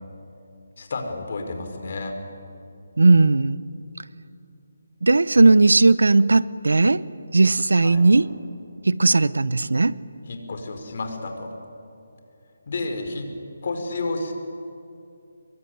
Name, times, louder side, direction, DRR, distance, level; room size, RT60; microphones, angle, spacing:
voice 1, 0.8-2.1 7.8-8.0 10.3-11.5 12.7-13.2 13.6-14.3, left 3 dB, 50° left, 5 dB, 4.9 m, -30 dB
voice 2, 3.0-3.6 5.0-7.0 7.3-8.3 8.9-9.9, right 3 dB, 90° right, 19 dB, 0.8 m, -17 dB
27.5 x 22.5 x 9.5 m, 2.6 s
hypercardioid pair, 165°, 0 cm